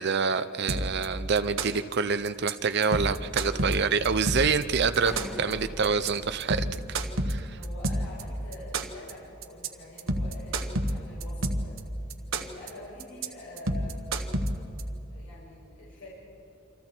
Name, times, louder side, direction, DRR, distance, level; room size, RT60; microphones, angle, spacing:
voice 1, 0.0-5.1 5.4-6.6 7.3-7.6, right 5 dB, 55° right, 11 dB, 0.6 m, -26 dB
sound 1, 0.7-1.1 1.4-1.9 2.3-2.5 2.8-4.6 4.9-5.5 5.8-6.1 6.4-8.2 8.5-9.1 9.4-9.7 10.0-11.8 12.1-12.7 13.0-13.3 13.6-14.8, right 1 dB, 70° right, 1.5 m, -29 dB
sound 2, 5.1-7.6, equal, ahead, 1.5 m, -42 dB
voice 2, 7.6-11.8 12.3-14.3 15.1-16.1, left 1 dB, 85° left, -7 dB, 6.8 m, -46 dB
28.5 x 26.5 x 4.5 m, 2.9 s
head